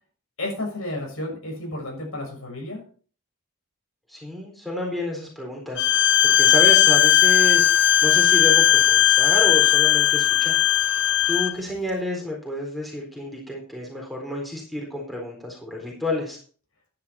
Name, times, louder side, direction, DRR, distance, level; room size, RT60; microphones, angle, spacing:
voice 1, 0.4-2.8, left 1 dB, 70° left, 0 dB, 6.6 m, -32 dB
voice 2, 4.1-10.6 11.3-16.4, left 1 dB, ahead, -1 dB, 4.0 m, -30 dB
Bowed string instrument, 5.8-11.5, left 11 dB, 55° left, 0.6 m, -17 dB
11.0 x 10.5 x 4.3 m, 0.42 s
head